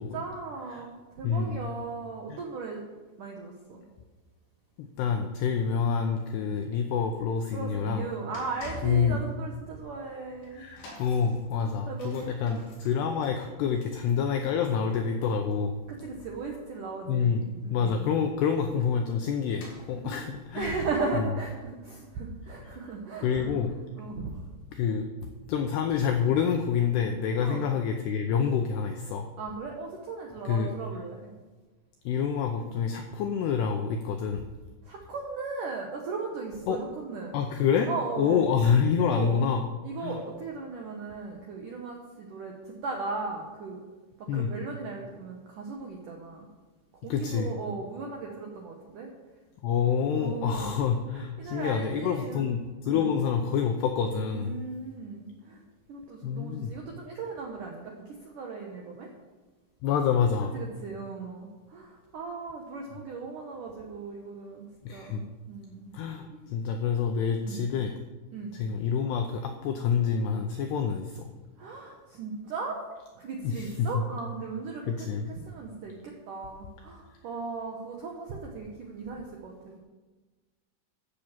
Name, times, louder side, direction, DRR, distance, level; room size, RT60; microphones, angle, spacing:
voice 1, 0.0-2.8 3.2-3.8 7.5-10.7 11.9-12.7 15.9-18.1 19.9-20.3 20.5-23.5 24.0-24.3 27.4-27.7 29.4-31.3 34.8-37.4 37.9-38.4 39.0-39.4 39.8-43.8 44.2-46.5 47.0-49.1 50.2-50.8 51.1-52.5 52.9-53.1 54.3-55.6 55.9-59.1 60.5-65.9 66.3-66.5 67.4-67.6 68.3-68.5 71.6-72.8 73.2-79.8, right 4 dB, 80° right, 0 dB, 1.8 m, -37 dB
voice 2, 1.2-1.7 2.3-2.4 4.8-8.1 8.8-9.2 10.5-15.8 17.1-17.4 17.7-20.8 23.2-23.7 24.7-29.3 30.5-30.7 32.1-34.5 36.7-36.8 37.3-37.9 38.2-39.6 40.0-40.2 44.3-44.5 47.1-47.5 49.6-54.6 56.2-56.7 59.8-60.6 64.8-65.2 65.9-67.9 68.5-71.3 73.4-74.0 74.9-75.3, left 7 dB, 85° left, 5 dB, 2.4 m, -27 dB
sound 1, 8.0-23.6 23.9-24.1 24.9-25.0, left 1 dB, 60° left, 5.7 m, -50 dB
13.5 x 6.6 x 7.4 m, 1.2 s
omnidirectional pair, 5.7 m